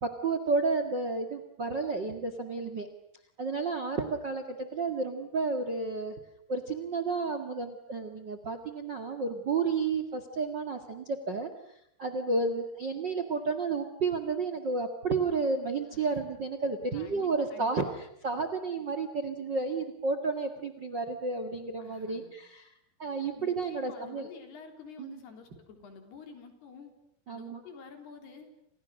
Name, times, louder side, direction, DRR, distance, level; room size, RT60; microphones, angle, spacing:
voice 1, 0.0-2.9 3.4-6.1 6.5-11.5 12.0-22.6 23.0-24.3 25.0-25.2 27.3-27.6, right 4 dB, 45° right, 9 dB, 1.5 m, -31 dB
voice 2, 15.9-16.4 16.9-18.0 21.8-22.3 23.3-27.0 27.3-28.5, left 5 dB, 70° left, 6 dB, 5.7 m, -49 dB
30.0 x 27.0 x 6.5 m, 0.72 s
omnidirectional pair, 4.8 m